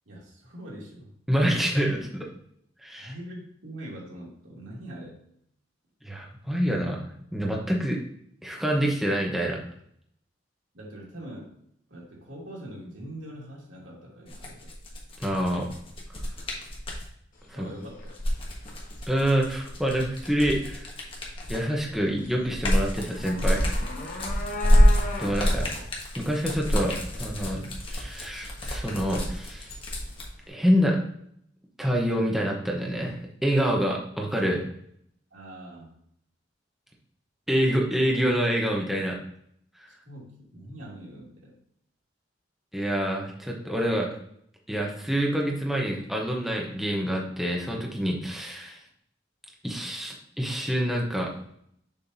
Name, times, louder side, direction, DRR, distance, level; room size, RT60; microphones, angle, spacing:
voice 1, 0.1-1.1 3.0-5.2 10.7-11.5 11.9-14.7 17.5-18.1 24.3-24.6 35.3-36.0 40.0-41.5, right 1 dB, 80° right, -4 dB, 2.5 m, -43 dB
voice 2, 1.3-2.3 2.8-3.1 6.0-7.0 7.3-8.0 8.4-9.6 15.2-15.7 17.5-17.7 19.1-20.9 21.5-23.8 25.2-25.7 26.2-26.9 27.2-29.7 30.5-31.0 31.8-34.6 37.5-39.2 42.7-44.1 44.7-48.8 49.6-51.3, equal, ahead, -1 dB, 0.9 m, -26 dB
sound 1, 14.3-17.1 18.0-21.8 22.2-30.3, equal, 30° left, 1.4 m, -26 dB
sound 2, 17.3-30.5, left 2 dB, 45° left, 1.2 m, -41 dB
6.9 x 5.6 x 2.7 m, 0.68 s
head